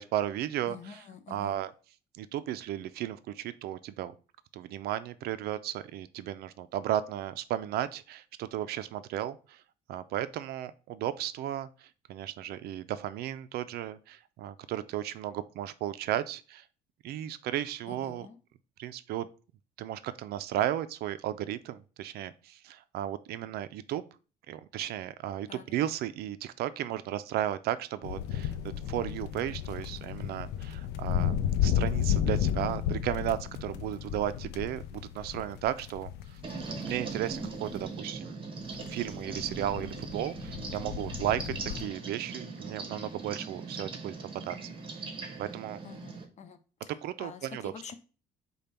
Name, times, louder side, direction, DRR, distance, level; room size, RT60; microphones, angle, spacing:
voice 1, 0.0-1.7 2.2-4.1 4.5-9.6 9.9-16.6 17.0-18.3 18.8-19.3 19.8-24.0 24.5-28.5 28.9-31.3 31.6-36.4 36.8-38.4 38.9-44.1 44.4-44.6 45.4-45.8 47.0-47.7, right 12 dB, 70° right, 14 dB, 0.4 m, -34 dB
voice 2, 0.7-1.5 17.9-18.4 25.5-25.6 45.8-46.6 47.2-47.9, left 6 dB, 45° left, 10 dB, 0.6 m, -46 dB
sound 1, 28.0-37.8 38.7-41.9, left 9 dB, 90° left, 0.4 m, -33 dB
sound 2, 36.4-46.2, right 4 dB, 30° right, 0.9 m, -40 dB
5.1 x 2.2 x 4.2 m, 0.35 s
cardioid pair, 110°, 17 cm